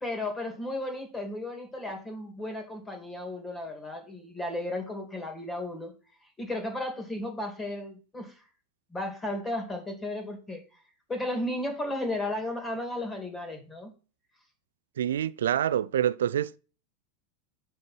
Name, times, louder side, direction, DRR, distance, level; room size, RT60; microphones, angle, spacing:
voice 1, 0.0-5.9 6.4-8.3 8.9-10.6 11.1-13.9, left 1 dB, 15° left, 2.6 m, -34 dB
voice 2, 15.0-16.6, right 10 dB, 75° right, 0.3 m, -26 dB
7.2 x 4.6 x 4.4 m
hypercardioid pair, 95°, 0 cm